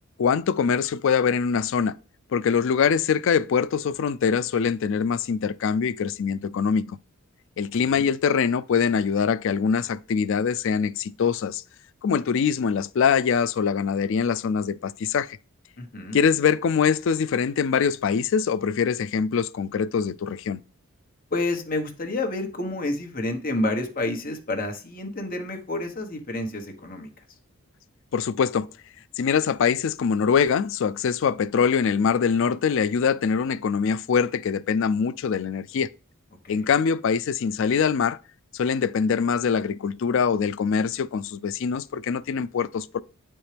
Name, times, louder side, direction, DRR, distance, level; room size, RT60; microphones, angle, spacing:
voice 1, 0.2-2.0 2.3-7.0 7.6-11.6 12.0-15.4 16.1-20.6 28.1-28.7 29.2-35.9 36.5-38.2 38.5-43.0, left 6 dB, 65° left, 0.4 m, -23 dB
voice 2, 7.7-8.0 15.8-16.2 21.3-27.1 36.4-36.7, left 2 dB, 40° left, 1.3 m, -29 dB
8.8 x 4.4 x 3.4 m
head